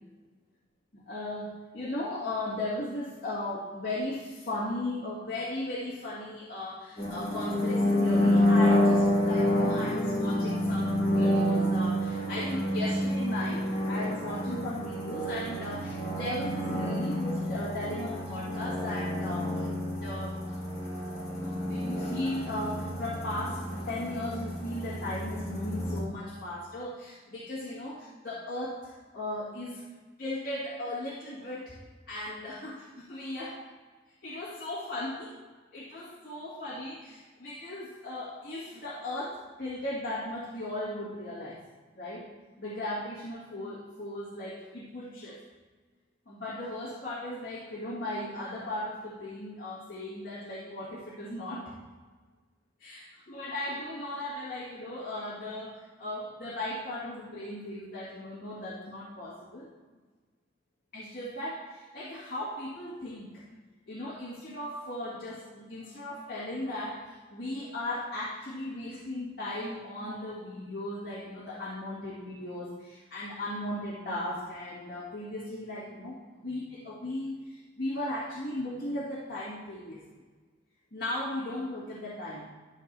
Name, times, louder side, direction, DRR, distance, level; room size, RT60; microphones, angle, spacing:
voice 1, 0.9-19.7 20.0-20.4 21.4-29.8 30.2-31.8 32.1-33.6 34.2-35.3 35.7-41.6 42.0-42.3 42.6-45.4 46.3-51.7 52.8-59.7 60.9-63.4 63.9-80.0 80.9-82.5, left 1 dB, 50° left, -9 dB, 1.8 m, -37 dB
sound 1, 7.0-26.0, left 1 dB, 35° left, 2.3 m, -28 dB
13.0 x 5.9 x 2.6 m, 1.4 s
head